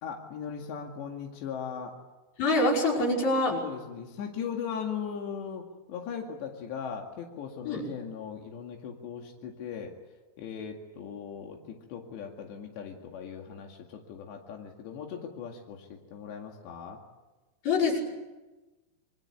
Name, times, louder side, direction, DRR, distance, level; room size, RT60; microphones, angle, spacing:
voice 1, 0.0-1.9 3.5-9.9 10.4-17.0, left 7 dB, 90° left, 1 dB, 4.4 m, -38 dB
voice 2, 2.4-3.5 7.7-7.8 17.6-18.0, left 2 dB, 55° left, -1 dB, 7.0 m, -25 dB
27.5 x 23.5 x 8.3 m, 1.2 s
omnidirectional pair, 4.9 m